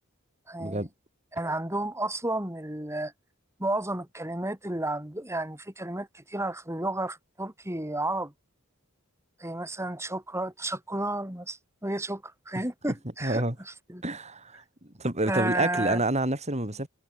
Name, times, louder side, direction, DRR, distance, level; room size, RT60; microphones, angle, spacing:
voice 1, 0.5-0.9 1.3-3.1 3.6-8.3 9.4-14.0 15.3-16.0, right 1 dB, 10° right, 6.6 m, -32 dB
voice 2, 13.2-13.6 14.0-14.6 15.0-16.9, right 2 dB, 30° right, 5.3 m, -28 dB
head